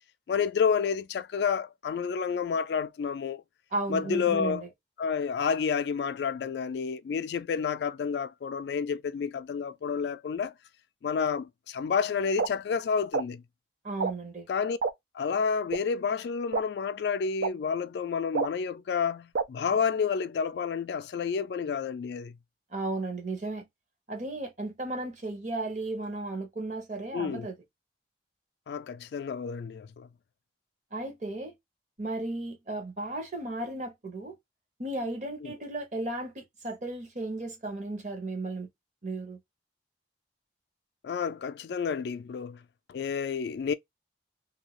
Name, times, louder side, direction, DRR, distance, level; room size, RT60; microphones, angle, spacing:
voice 1, 0.3-3.4 3.9-4.6 5.0-10.5 11.0-13.4 14.5-14.8 15.1-22.3 27.1-27.5 28.7-30.1 35.4-35.5 41.0-42.6 42.9-43.7, left 6 dB, 65° left, 0.3 m, -30 dB
voice 2, 3.7-4.7 13.8-14.5 22.7-23.7 24.1-27.5 30.9-31.5 32.0-34.3 34.8-38.7 39.0-39.4, right 2 dB, 40° right, 1.0 m, -35 dB
sound 1, 12.4-12.5 13.1-13.2 14.0-14.1 14.8-14.9 15.7-15.8 16.5-16.6 17.4-17.5 18.3-18.5 19.3-19.4, right 5 dB, 85° right, 0.5 m, -27 dB
2.7 x 2.2 x 2.9 m
head